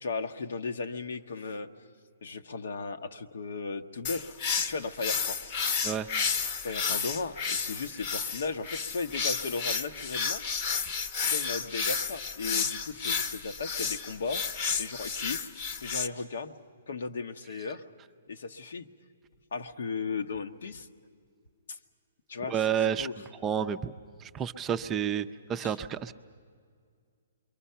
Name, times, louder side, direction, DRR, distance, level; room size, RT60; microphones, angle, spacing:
voice 1, 0.0-1.7 2.2-4.2 4.6-5.6 6.6-10.4 11.2-14.4 14.8-15.5 15.8-16.5 16.9-17.8 18.3-18.9 19.5-20.9 21.7-21.8 22.3-22.6 23.0-23.1 25.6-25.8, left 4 dB, 75° left, 7 dB, 1.1 m, -36 dB
sound 1, 4.0-16.1, left 5 dB, 35° left, 0.9 m, -31 dB
voice 2, 22.5-23.1 23.4-23.9 24.2-26.1, right 8 dB, 20° right, 9 dB, 0.5 m, -30 dB
28.0 x 23.5 x 5.7 m, 2.1 s
hypercardioid pair, 150°, 0 cm